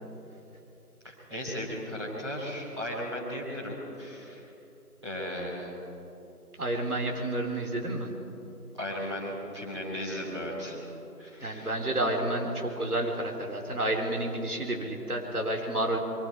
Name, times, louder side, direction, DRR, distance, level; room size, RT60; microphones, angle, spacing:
voice 1, 1.0-4.5 5.0-5.9 8.7-10.8 11.2-11.7, equal, 15° right, -8 dB, 2.9 m, -36 dB
voice 2, 6.6-8.1 11.4-16.0, right 1 dB, 65° right, 1 dB, 4.1 m, -30 dB
28.5 x 23.5 x 4.7 m, 3.0 s
figure-of-eight pair, 175°, 48 cm